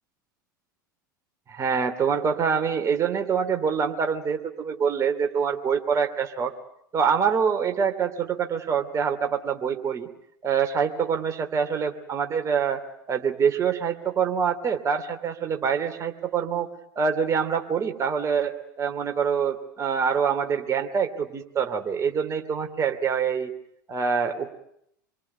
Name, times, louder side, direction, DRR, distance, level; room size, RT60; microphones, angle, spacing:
voice 1, 1.5-6.5 6.9-10.1 10.4-12.8 13.1-16.7 17.0-23.5 23.9-24.5, right 6 dB, 25° right, 6 dB, 2.9 m, -25 dB
26.5 x 22.5 x 9.5 m, 0.75 s
figure-of-eight pair, 80°, 11 cm